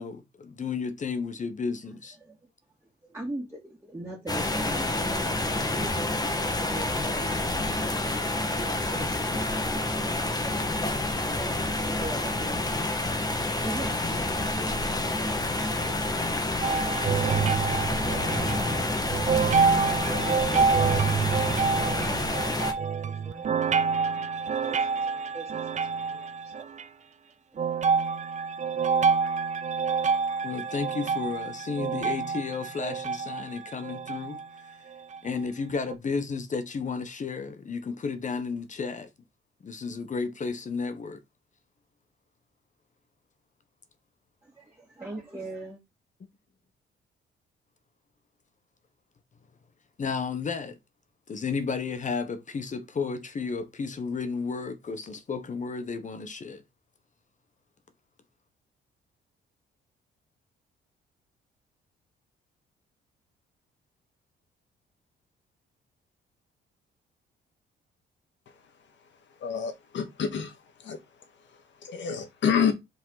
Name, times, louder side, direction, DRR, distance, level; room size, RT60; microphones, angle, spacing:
voice 1, 0.0-2.2 30.4-34.8 35.2-39.1 39.6-41.2 50.0-50.8 51.3-56.6, left 5 dB, 40° left, 1.2 m, -33 dB
voice 2, 2.2-2.5 2.8-21.0 21.9-27.0 27.5-27.8 44.4-45.8, right 2 dB, 10° right, 2.7 m, -43 dB
sound 1, 4.3-22.7, left 2 dB, 20° left, 1.6 m, -28 dB
sound 2, 16.6-26.8 27.6-34.5 35.1-35.2 35.9-36.0, right 5 dB, 35° right, 0.6 m, -27 dB
voice 3, 69.4-70.5 70.8-71.0 71.8-72.7, left 7 dB, 65° left, 2.0 m, -27 dB
5.2 x 5.1 x 4.1 m
cardioid pair, 90°, 20 cm